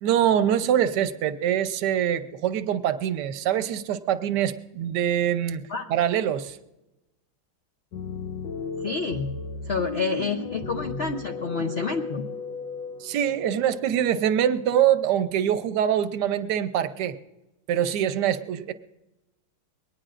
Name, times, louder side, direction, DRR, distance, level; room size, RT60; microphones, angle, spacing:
voice 1, 0.0-5.6 5.9-6.6 13.0-17.1 17.7-18.7, right 10 dB, 65° right, 11 dB, 1.2 m, -24 dB
sound 1, 7.9-15.4, left 4 dB, 70° left, 1.5 m, -36 dB
voice 2, 8.8-9.3 9.6-12.3, left 4 dB, 90° left, 3 dB, 0.5 m, -28 dB
22.0 x 19.0 x 2.5 m, 0.97 s
omnidirectional pair, 2.2 m